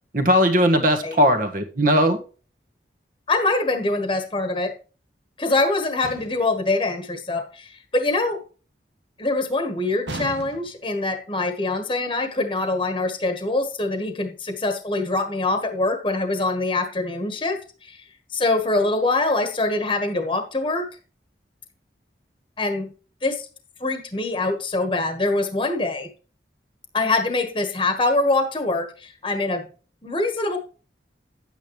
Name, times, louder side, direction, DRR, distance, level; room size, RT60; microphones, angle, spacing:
voice 1, 0.1-2.2, equal, 50° right, 5 dB, 1.6 m, -18 dB
voice 2, 3.3-4.7 5.4-8.4 9.2-18.0 18.3-20.9 22.6-22.9 23.2-23.4 23.8-26.1 26.9-29.7 30.0-30.6, left 2 dB, 25° left, 5 dB, 1.3 m, -24 dB
sound 1, 6.0-6.6 10.1-10.9, right 2 dB, 75° right, 1.1 m, -35 dB
10.0 x 8.9 x 3.1 m, 0.37 s
head